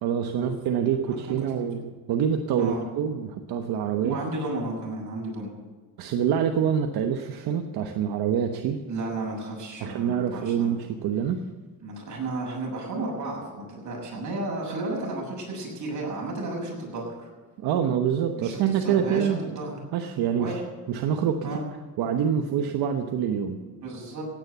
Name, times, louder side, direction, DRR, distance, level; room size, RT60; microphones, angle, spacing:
voice 1, 0.0-4.2 6.0-8.8 9.8-11.4 17.6-19.4 19.9-20.6 20.9-21.5 22.0-23.6, right 8 dB, 75° right, 5 dB, 1.2 m, -26 dB
voice 2, 4.0-5.6 8.9-10.7 11.8-17.3 18.4-19.8 20.4-20.6 21.4-21.6 23.6-24.2, right 2 dB, 50° right, -1 dB, 7.0 m, -33 dB
16.5 x 9.7 x 8.2 m, 1.3 s
cardioid pair, 120°, 37 cm